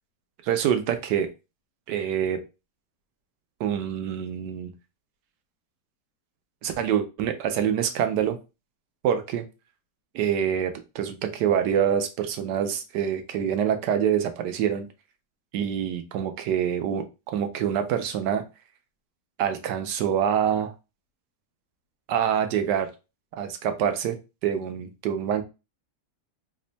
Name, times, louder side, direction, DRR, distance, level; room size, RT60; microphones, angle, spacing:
voice 1, 0.4-1.3 1.9-2.4 3.6-4.7 6.6-8.4 9.0-9.4 10.1-14.9 15.5-18.4 19.4-20.7 22.1-22.9 23.3-24.2 24.4-25.4, right 9 dB, 85° right, 7 dB, 1.2 m, -26 dB
3.4 x 2.1 x 3.9 m, 0.28 s
omnidirectional pair, 1.8 m